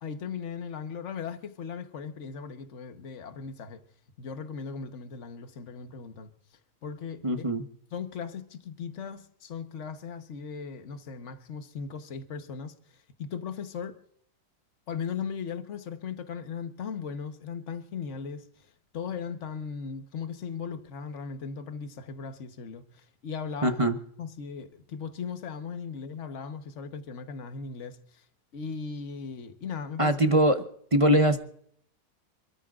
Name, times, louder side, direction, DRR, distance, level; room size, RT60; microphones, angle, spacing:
voice 1, 0.0-3.8 4.2-6.3 6.8-7.4 7.9-14.0 14.9-18.7 18.9-23.8 24.2-28.2 28.5-30.1, left 6 dB, 45° left, 1.4 m, -38 dB
voice 2, 7.2-7.6 23.6-24.0 30.0-30.6 30.9-31.4, right 1 dB, 25° right, 0.8 m, -22 dB
27.5 x 13.5 x 2.5 m
omnidirectional pair, 1.8 m